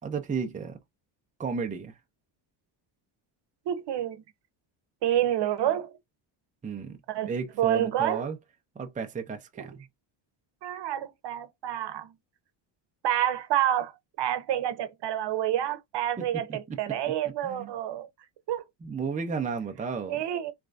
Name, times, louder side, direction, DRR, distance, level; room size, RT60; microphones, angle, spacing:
voice 1, 0.0-0.8 1.4-2.0 6.6-7.0 7.3-8.4 8.8-9.8 16.2-16.6 17.4-17.7 18.8-20.2, right 5 dB, 15° right, 0.6 m, -33 dB
voice 2, 3.7-4.2 5.0-5.9 7.1-7.3 7.6-8.3 10.6-12.1 13.0-13.9 14.2-18.1 18.5-18.6 20.1-20.5, right 11 dB, 60° right, 1.0 m, -28 dB
3.7 x 3.3 x 2.5 m
cardioid pair, 135°, 48 cm